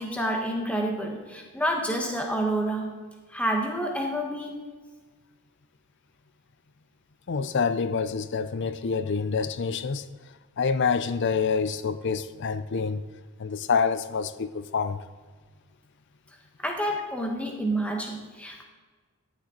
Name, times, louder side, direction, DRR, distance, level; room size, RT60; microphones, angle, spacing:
voice 1, 0.0-2.9 3.3-4.6 16.6-18.6, right 1 dB, 5° left, 1.2 m, -28 dB
voice 2, 7.3-10.1 10.6-13.0 13.4-15.0, left 5 dB, 50° left, 0.5 m, -27 dB
13.0 x 7.5 x 3.9 m
head